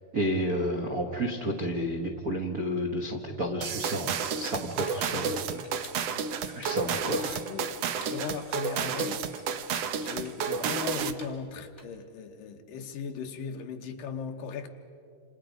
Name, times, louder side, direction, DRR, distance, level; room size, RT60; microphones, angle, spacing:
voice 1, 0.1-5.6 6.5-7.4, equal, 65° right, 2 dB, 0.9 m, -31 dB
sound 1, 3.1-11.8, left 3 dB, 20° left, 2.3 m, -53 dB
sound 2, 3.6-11.3, right 6 dB, 85° right, 1.4 m, -31 dB
voice 2, 6.1-7.2 7.5-9.5 10.0-14.7, left 6 dB, 75° left, 5 dB, 2.8 m, -39 dB
28.0 x 27.5 x 5.2 m, 2.5 s
omnidirectional pair, 4.1 m